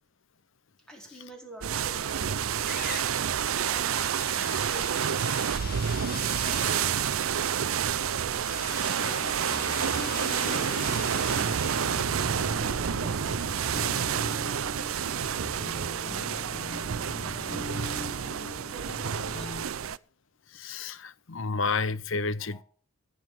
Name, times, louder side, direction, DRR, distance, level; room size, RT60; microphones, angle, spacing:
voice 1, 0.9-3.1 3.7-8.5 9.0-12.1 12.5-14.8 15.3-19.9 22.4-22.6, right 2 dB, 5° left, 4.5 m, -49 dB
sound 1, 1.6-20.0, right 8 dB, 75° right, 0.5 m, -29 dB
sound 2, 2.2-2.3 2.6-13.5, left 5 dB, 45° left, 2.1 m, -42 dB
sound 3, 9.0-19.7, left 2 dB, 25° left, 1.0 m, -41 dB
voice 2, 20.5-22.6, left 4 dB, 60° left, 0.8 m, -30 dB
15.5 x 7.9 x 7.5 m
head